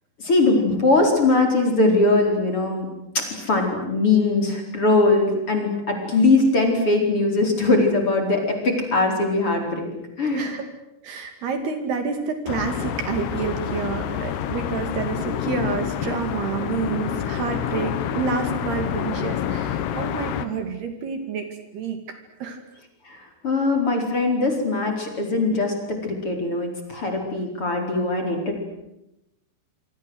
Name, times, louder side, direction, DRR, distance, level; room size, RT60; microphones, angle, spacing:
voice 1, 0.2-2.9 3.1-9.9 10.2-10.5 23.0-28.6, left 2 dB, 30° left, 3 dB, 5.0 m, -21 dB
voice 2, 10.3-10.6 11.0-22.6, right 5 dB, 60° right, 7 dB, 4.2 m, -29 dB
sound 1, 12.5-20.5, left 9 dB, 70° left, 3.3 m, -28 dB
27.5 x 25.0 x 8.0 m, 0.86 s
omnidirectional pair, 5.5 m